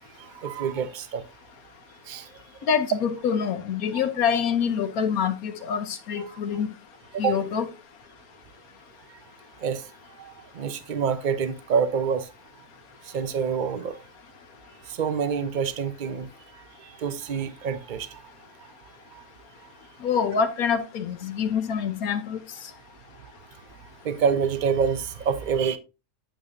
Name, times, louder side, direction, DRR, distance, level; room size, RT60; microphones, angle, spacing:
voice 1, 0.2-1.2 2.1-2.3 6.2-6.4 7.1-7.4 9.6-9.9 10.2-12.3 13.0-14.0 14.9-16.3 16.8-18.2 19.1-19.2 24.0-25.8, right 6 dB, 45° right, 0.7 m, -27 dB
voice 2, 2.6-6.7 7.2-7.6 20.0-22.4, left 7 dB, 70° left, 1.2 m, -26 dB
9.2 x 6.8 x 2.6 m
omnidirectional pair, 1.7 m